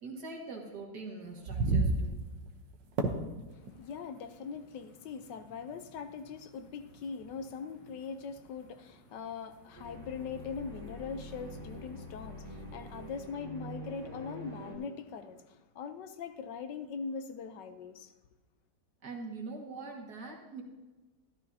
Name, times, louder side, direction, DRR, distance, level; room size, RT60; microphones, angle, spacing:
voice 1, 0.0-2.2 19.0-20.6, right 3 dB, 60° right, 2.3 m, -43 dB
sound 1, 1.2-13.3, right 3 dB, 75° right, 1.6 m, -39 dB
voice 2, 3.5-18.1, left 5 dB, 75° left, 1.3 m, -41 dB
sound 2, 9.7-14.8, equal, 25° right, 2.6 m, -45 dB
13.0 x 12.5 x 2.7 m
omnidirectional pair, 2.0 m